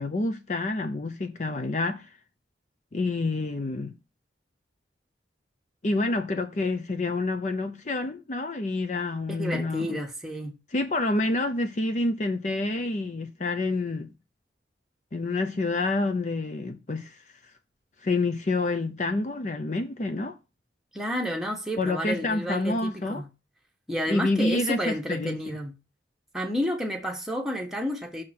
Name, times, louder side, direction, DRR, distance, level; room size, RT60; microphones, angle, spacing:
voice 1, 0.0-2.1 2.9-3.9 5.8-10.0 10.7-14.1 15.1-17.2 18.0-20.4 21.8-23.2 24.1-25.4, left 2 dB, 40° left, 0.5 m, -28 dB
voice 2, 9.3-10.5 20.9-23.3 23.9-25.7 26.3-28.2, equal, ahead, 1.2 m, -30 dB
6.4 x 3.8 x 5.9 m
head